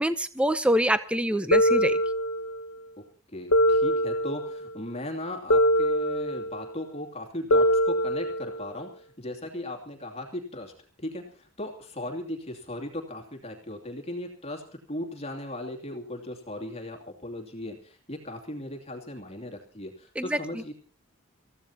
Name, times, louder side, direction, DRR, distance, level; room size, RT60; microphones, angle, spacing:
voice 1, 0.0-2.0 20.2-20.4, equal, 5° right, 11 dB, 0.6 m, -25 dB
sound 1, 1.5-2.7 3.5-4.7 5.5-6.7 7.5-8.7, equal, 85° left, 1.0 m, -23 dB
voice 2, 3.3-10.7 11.0-20.7, left 1 dB, 30° left, 1 dB, 2.6 m, -37 dB
27.5 x 15.5 x 2.9 m, 0.40 s
head